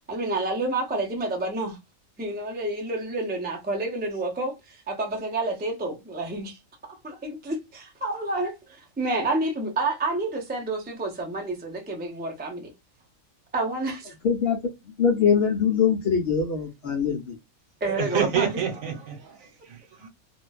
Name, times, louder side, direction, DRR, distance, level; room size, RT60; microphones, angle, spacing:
voice 1, 0.1-1.8 2.2-12.7 13.5-14.1 17.8-18.5, right 2 dB, 15° right, 0.3 m, -29 dB
voice 2, 14.2-14.6 15.0-17.4, left 6 dB, 60° left, 0.7 m, -22 dB
voice 3, 17.9-20.1, right 8 dB, 75° right, 1.3 m, -29 dB
2.5 x 2.2 x 2.2 m
omnidirectional pair, 1.4 m